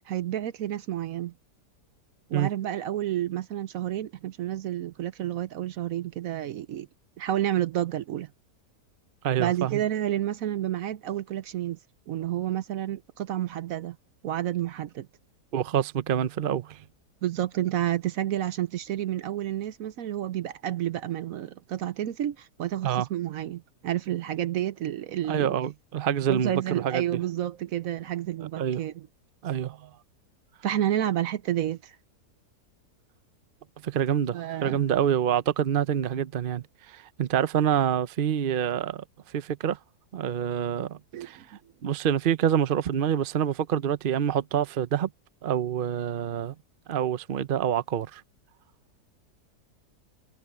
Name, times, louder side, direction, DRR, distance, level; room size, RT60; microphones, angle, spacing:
voice 1, 0.1-1.3 2.3-6.9 7.2-8.3 9.4-11.8 12.1-14.0 14.2-15.1 17.2-25.5 26.3-29.1 30.6-32.0 34.3-34.8 41.1-41.4, right 12 dB, 65° right, 1.0 m, -30 dB
voice 2, 9.2-9.8 15.5-16.8 22.8-23.1 25.3-27.2 28.6-28.8 29.4-29.9 33.8-39.0 39.3-39.8 40.1-41.4 41.8-45.1 45.4-46.5 46.9-48.2, right 9 dB, 50° right, 0.6 m, -26 dB
omnidirectional pair, 1.7 m